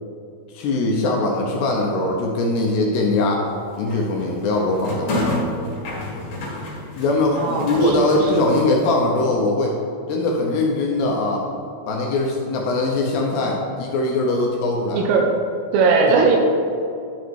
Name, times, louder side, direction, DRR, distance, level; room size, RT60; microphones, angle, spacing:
voice 1, 0.5-3.5 3.8-5.3 7.0-9.7 10.1-11.4 11.9-15.1, left 2 dB, 75° left, -1 dB, 2.6 m, -21 dB
sound 1, 3.5-8.7, left 1 dB, 55° left, 3.3 m, -29 dB
voice 2, 7.4-8.5 15.0-15.4 15.7-16.4, right 4 dB, 80° right, 2 dB, 2.6 m, -19 dB
13.0 x 4.7 x 4.6 m, 2.4 s
omnidirectional pair, 5.4 m